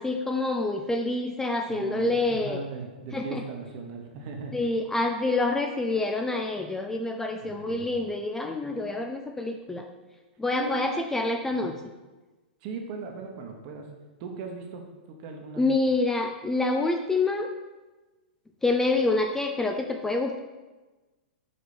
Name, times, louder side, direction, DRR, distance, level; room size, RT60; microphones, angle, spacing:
voice 1, 0.0-2.6 3.1-3.4 4.5-9.9 10.4-11.7 15.6-17.5 18.6-20.4, left 2 dB, 10° left, 3 dB, 0.3 m, -27 dB
voice 2, 1.7-4.5 7.4-7.9 10.5-11.0 11.5-11.7 12.6-13.9 14.2-15.6, right 4 dB, 45° right, 3 dB, 1.1 m, -38 dB
5.2 x 4.5 x 4.2 m, 1.2 s
hypercardioid pair, 120°, 6 cm